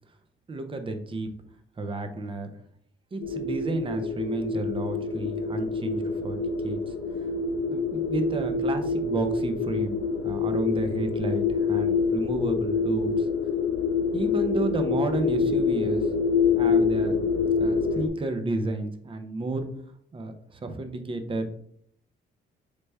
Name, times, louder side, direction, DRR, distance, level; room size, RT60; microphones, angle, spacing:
voice 1, 0.5-1.3 1.8-2.5 3.1-6.9 7.7-13.3 14.1-16.1 16.5-17.2 17.6-19.6 20.1-21.5, right 2 dB, 25° right, 7 dB, 0.6 m, -31 dB
sound 1, 3.2-18.1, left 5 dB, 70° left, 0.8 m, -26 dB
4.0 x 3.3 x 3.3 m, 0.65 s
cardioid pair, 90°, 20 cm